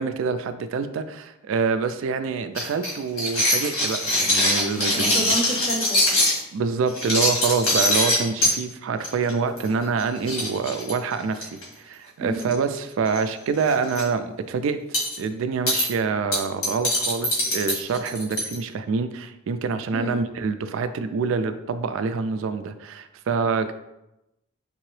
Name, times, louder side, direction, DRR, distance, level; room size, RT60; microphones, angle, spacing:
voice 1, 0.0-5.4 6.5-14.8 15.2-23.7, right 5 dB, 65° right, 9 dB, 0.3 m, -26 dB
sound 1, 2.6-6.4 6.9-8.5 9.0-9.3 9.6-9.7 10.0-10.1 10.3-11.6 12.4-12.8 13.1-13.2 13.6-14.0 14.9-15.2 15.7-15.9 16.3-18.5, left 1 dB, 85° left, 1.5 m, -22 dB
voice 2, 4.9-6.2 12.2-12.5 19.9-20.2, equal, 30° left, 2 dB, 0.6 m, -30 dB
5.1 x 2.8 x 3.1 m, 0.90 s
head